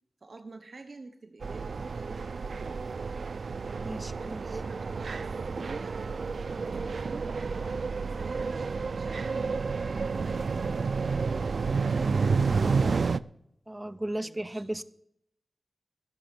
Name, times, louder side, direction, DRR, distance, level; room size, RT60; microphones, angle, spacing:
voice 1, 0.2-3.2 4.2-6.0 6.5-11.3 11.8-12.8 14.2-14.7, right 3 dB, 60° right, 1.1 m, -48 dB
sound 1, 1.4-13.2, right 4 dB, 75° right, 0.4 m, -30 dB
voice 2, 3.8-4.4 13.7-14.8, right 1 dB, 20° right, 0.6 m, -35 dB
14.5 x 7.0 x 6.8 m
wide cardioid pair, 90°, 0 cm